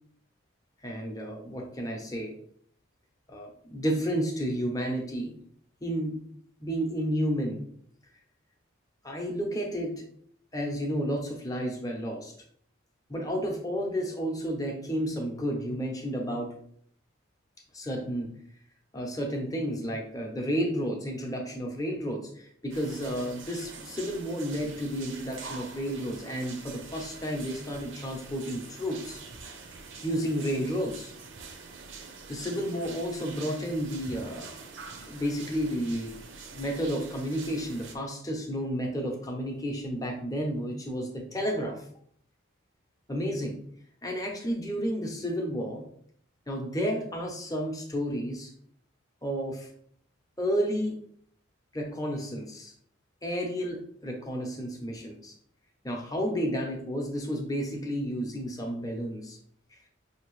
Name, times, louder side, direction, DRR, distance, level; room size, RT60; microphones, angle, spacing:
voice 1, 0.8-2.3 3.3-5.3 5.8-6.1 6.6-7.6 9.0-10.1 10.5-12.3 13.1-16.5 17.7-18.3 18.9-29.2 30.0-31.1 32.3-34.5 35.1-36.1 36.5-41.8 43.1-43.6 44.0-45.8 46.5-48.5 49.2-49.7 50.4-51.0 51.7-52.7 53.2-55.3 55.8-59.4, equal, 15° left, 1 dB, 0.7 m, -31 dB
sound 1, 22.7-37.9, right 4 dB, 70° right, 0.7 m, -45 dB
5.4 x 2.8 x 3.1 m, 0.63 s
head